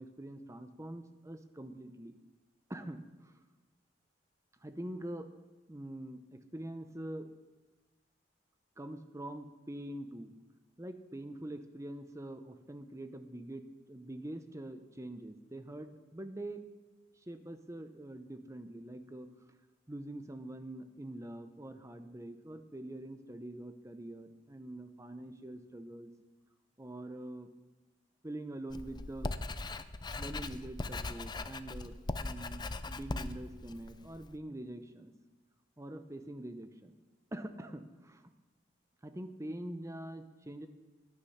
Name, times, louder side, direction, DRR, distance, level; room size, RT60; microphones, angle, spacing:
voice 1, 0.0-2.1 2.7-3.3 4.6-5.3 5.7-7.3 8.8-10.3 10.8-16.6 17.3-19.3 19.9-26.1 26.8-27.5 28.2-29.3 30.2-35.1 35.8-36.9 37.3-38.2 39.0-40.7, right 1 dB, 15° right, 9 dB, 0.8 m, -44 dB
Writing, 28.7-34.4, left 2 dB, 25° left, 0.5 m, -40 dB
17.5 x 10.0 x 5.8 m, 1.2 s
head